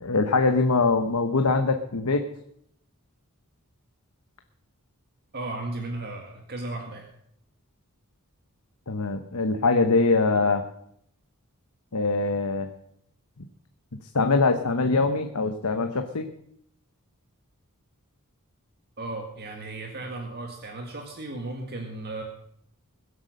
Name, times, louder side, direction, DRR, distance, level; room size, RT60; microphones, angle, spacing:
voice 1, 0.0-2.2 8.9-10.6 11.9-12.7 14.1-16.3, left 3 dB, 80° left, 7 dB, 1.1 m, -23 dB
voice 2, 5.3-7.1 19.0-22.2, right 2 dB, 45° right, 3 dB, 1.8 m, -35 dB
21.5 x 8.2 x 6.5 m, 0.71 s
head